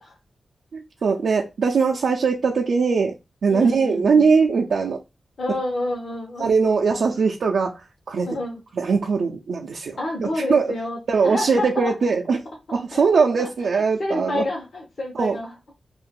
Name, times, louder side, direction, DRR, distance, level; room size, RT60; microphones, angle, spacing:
voice 1, 0.7-3.1 3.4-5.0 6.4-7.7 8.1-8.3 8.7-10.7 11.1-12.4 12.7-14.4 15.2-15.4, right 5 dB, 80° right, -1 dB, 0.5 m, -21 dB
voice 2, 3.5-4.3 5.4-7.1 8.2-8.6 10.0-11.9 12.7-15.5, left 2 dB, 55° left, -2 dB, 0.9 m, -29 dB
2.7 x 2.5 x 3.6 m, 0.24 s
wide cardioid pair, 155°, 0 cm